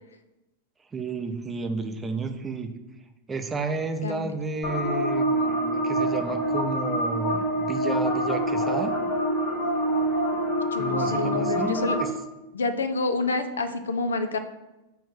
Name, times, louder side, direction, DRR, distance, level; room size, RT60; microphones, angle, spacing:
voice 1, 0.9-2.7 3.3-8.9 10.8-12.1, right 3 dB, 15° right, 5 dB, 0.6 m, -31 dB
sound 1, 4.6-12.0, right 1 dB, 45° left, 1.2 m, -26 dB
voice 2, 10.7-12.0 12.5-14.4, left 3 dB, 70° left, 10 dB, 0.5 m, -28 dB
6.9 x 3.0 x 4.9 m, 1.0 s
figure-of-eight pair, 90°, 0 cm